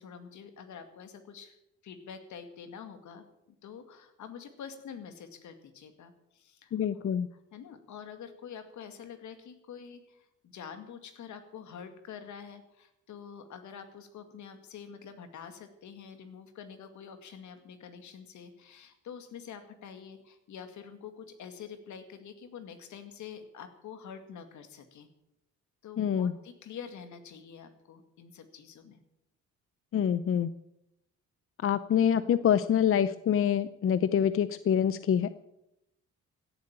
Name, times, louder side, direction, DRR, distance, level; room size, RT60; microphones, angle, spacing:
voice 1, 0.0-1.6 1.8-3.2 3.6-7.0 7.3-10.3 10.5-25.1 25.8-29.0, left 7 dB, 75° left, 8 dB, 2.1 m, -46 dB
voice 2, 6.7-7.3 26.0-26.3 29.9-30.5 31.6-35.3, left 9 dB, 45° left, 15 dB, 0.6 m, -26 dB
16.5 x 7.9 x 8.9 m, 0.86 s
cardioid pair, 90°, 30 cm